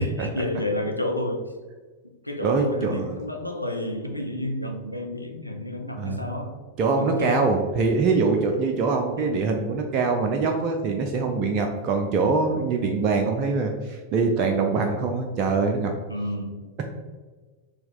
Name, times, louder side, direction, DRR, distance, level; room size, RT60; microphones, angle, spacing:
voice 1, 0.0-1.4 2.2-6.6 7.0-7.5 9.2-9.4 16.1-16.6, left 1 dB, 90° left, 3 dB, 0.5 m, -30 dB
voice 2, 2.4-3.2 6.0-6.3 6.8-15.9, right 4 dB, 35° right, 2 dB, 0.5 m, -23 dB
4.3 x 3.0 x 3.8 m, 1.4 s
figure-of-eight pair, 90°, 0 cm